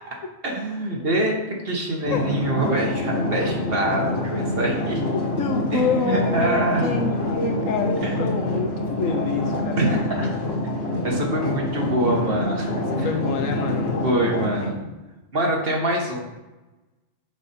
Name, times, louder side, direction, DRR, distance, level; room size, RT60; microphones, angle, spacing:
voice 1, 0.4-1.4 1.6-5.0 5.7-6.9 8.0-8.4 9.8-10.3 11.0-12.7 13.0-13.1 14.0-14.8 15.3-16.2, right 1 dB, 50° right, -1 dB, 1.4 m, -25 dB
sound 1, 2.0-14.7, left 1 dB, 70° left, 1.8 m, -26 dB
voice 2, 5.4-9.8 12.9-14.0 14.7-15.0, left 4 dB, 90° left, 4 dB, 1.3 m, -27 dB
7.1 x 5.0 x 4.2 m, 1.1 s
omnidirectional pair, 1.3 m